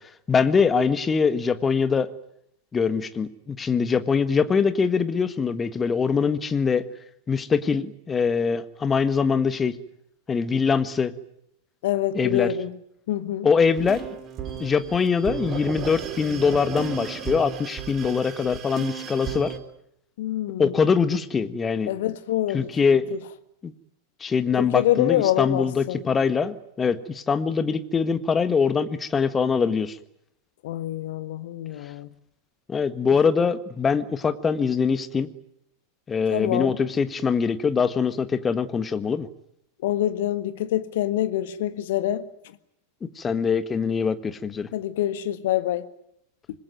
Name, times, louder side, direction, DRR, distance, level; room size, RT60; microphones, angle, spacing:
voice 1, 0.3-2.1 2.7-6.8 7.3-9.8 10.3-11.1 12.1-12.5 13.4-14.0 14.6-19.5 20.6-21.9 22.5-23.0 23.6-23.7 24.2-30.0 32.7-35.3 36.1-39.3 43.2-44.7, left 5 dB, 20° left, 1.6 m, -23 dB
voice 2, 11.8-12.8 13.1-13.5 20.2-20.8 21.9-22.7 23.1-23.2 24.6-26.0 30.6-32.1 36.3-36.8 39.8-42.3 44.7-45.9, left 13 dB, 55° left, 1.6 m, -26 dB
sound 1, 13.6-19.6, right 7 dB, 30° right, 3.4 m, -34 dB
26.0 x 21.0 x 9.4 m
figure-of-eight pair, 90°, 0 cm